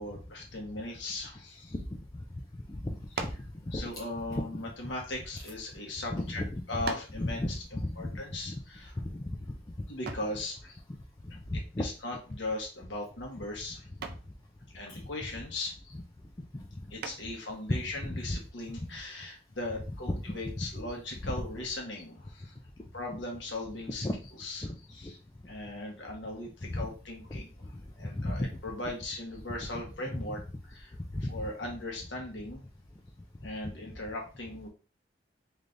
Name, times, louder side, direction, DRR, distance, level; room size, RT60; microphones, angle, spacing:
voice 1, 0.0-1.7 3.7-6.4 6.7-7.4 7.7-8.9 9.9-10.7 11.8-13.9 14.7-15.7 16.9-22.5 22.9-24.0 24.4-25.1 25.5-27.5 28.0-30.4 30.7-30.9 31.3-32.6 33.4-34.7, left 2 dB, 85° left, 0 dB, 1.2 m, -38 dB
voice 2, 2.7-3.3 3.7-3.8 4.3-4.6 6.1-6.6 7.2-7.6 8.0-8.1 8.5-8.6 9.0-9.4 11.5-11.9 14.9-15.0 15.9-16.0 18.0-18.4 21.2-21.4 24.0-24.1 24.6-24.8 26.7-26.9 28.1-28.5 30.3-30.4 31.1-31.3, left 1 dB, 20° left, 0 dB, 0.4 m, -34 dB
sound 1, 3.1-3.5 4.5-5.7 6.3-6.4 6.9-7.3 10.1-10.4 12.3-12.7 13.0-13.4 14.0-14.3 17.0-17.5, right 4 dB, 60° right, 0.5 m, -40 dB
3.5 x 3.3 x 2.6 m, 0.35 s
head